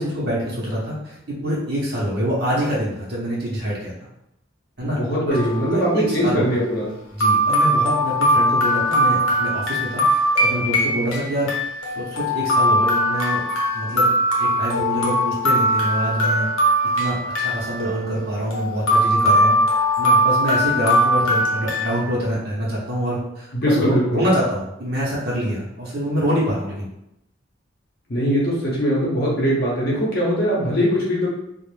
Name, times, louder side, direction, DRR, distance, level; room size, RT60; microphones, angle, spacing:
voice 1, 0.0-3.9 4.8-5.0 5.3-5.4 5.7-6.4 7.1-11.5 12.0-13.4 13.7-14.1 14.4-16.5 16.9-19.6 20.0-26.9, equal, 50° right, -6 dB, 0.6 m, -25 dB
voice 2, 4.8-6.9 23.5-24.2 28.1-31.3, equal, 50° left, -5 dB, 0.7 m, -21 dB
sound 1, 5.3-5.8 6.7-6.8 7.2-22.0, equal, 85° left, 0.7 m, -20 dB
2.4 x 2.0 x 3.2 m, 0.84 s
head